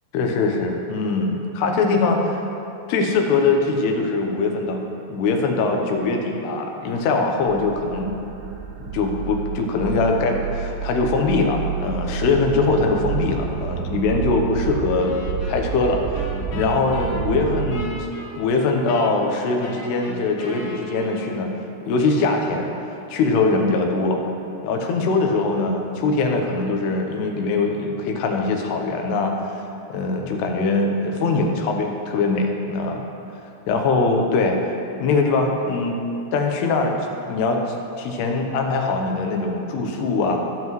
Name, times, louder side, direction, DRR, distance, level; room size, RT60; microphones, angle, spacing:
voice 1, 0.1-2.4 2.9-8.1 8.8-15.2 15.5-16.3 16.5-18.1 18.4-21.5 21.8-22.7 23.1-24.2 24.6-29.6 29.9-33.1 33.7-34.8 35.0-36.0 36.3-37.0 37.3-37.6 38.0-40.4, left 3 dB, 85° left, 2 dB, 3.0 m, -22 dB
sound 1, 7.4-17.9, right 8 dB, 80° right, 2.2 m, -29 dB
sound 2, 15.0-21.6, left 1 dB, 65° left, 1.3 m, -38 dB
20.0 x 7.7 x 3.1 m, 2.9 s
omnidirectional pair, 4.6 m